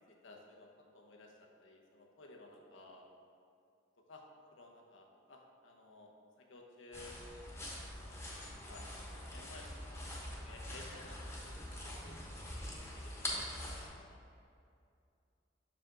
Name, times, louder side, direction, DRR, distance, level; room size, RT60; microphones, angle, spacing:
voice 1, 0.1-3.1 4.1-4.2 4.5-6.1 6.4-8.2 8.5-10.1 10.3-14.2, left 2 dB, 90° left, 1 dB, 0.8 m, -56 dB
sound 1, 6.9-13.9, left 1 dB, 15° left, 1.0 m, -44 dB
6.0 x 4.9 x 3.8 m, 2.5 s
head